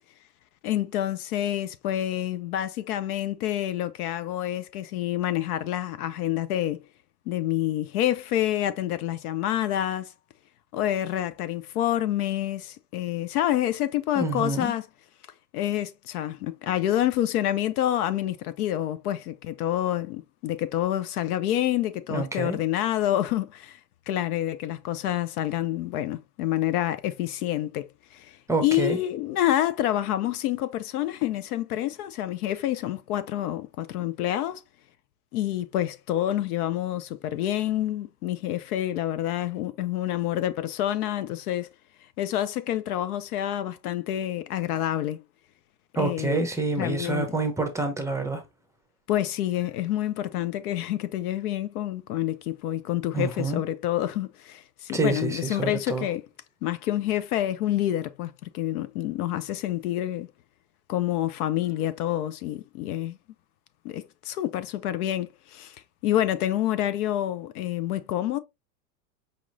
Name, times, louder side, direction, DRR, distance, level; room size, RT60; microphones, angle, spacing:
voice 1, 0.6-6.8 7.3-10.1 10.7-14.8 15.5-23.8 24.1-34.6 35.3-41.7 42.2-45.2 45.9-46.4 46.8-47.3 49.1-56.2 56.6-60.3 60.9-63.2 63.8-65.8 66.0-68.4, left 12 dB, 60° left, 0.6 m, -28 dB
voice 2, 14.1-14.7 22.1-22.6 28.5-29.0 45.9-48.4 53.1-53.6 54.9-56.1, right 3 dB, 5° right, 0.7 m, -27 dB
5.2 x 2.9 x 2.6 m
hypercardioid pair, 115°, 50 cm